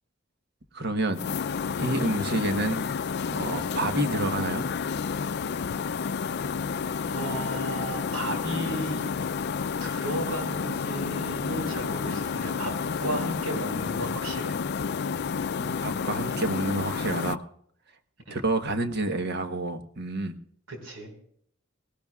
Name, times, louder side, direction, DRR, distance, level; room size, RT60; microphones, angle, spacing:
voice 1, 0.7-1.2 1.8-2.8 3.3-4.7 15.6-17.4 18.3-20.4, right 2 dB, 55° right, 7 dB, 1.3 m, -28 dB
sound 1, 1.1-17.4, left 6 dB, 55° left, 0.4 m, -30 dB
voice 2, 7.0-9.0 9.8-12.8 13.0-14.6 18.3-18.4 20.7-21.1, right 1 dB, 85° right, 3 dB, 5.0 m, -34 dB
19.5 x 18.5 x 2.4 m, 0.65 s
head